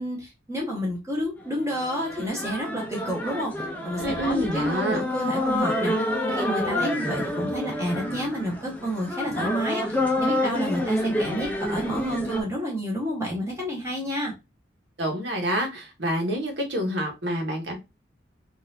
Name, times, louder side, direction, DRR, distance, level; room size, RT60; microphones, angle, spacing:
voice 1, 0.0-3.5 3.8-14.3, equal, 15° right, -3 dB, 1.1 m, -30 dB
sound 1, 1.4-12.4, left 1 dB, 10° left, 0.6 m, -28 dB
voice 2, 4.0-5.0 15.0-17.8, equal, 75° right, 2 dB, 1.2 m, -27 dB
3.9 x 2.6 x 2.7 m, 0.24 s
head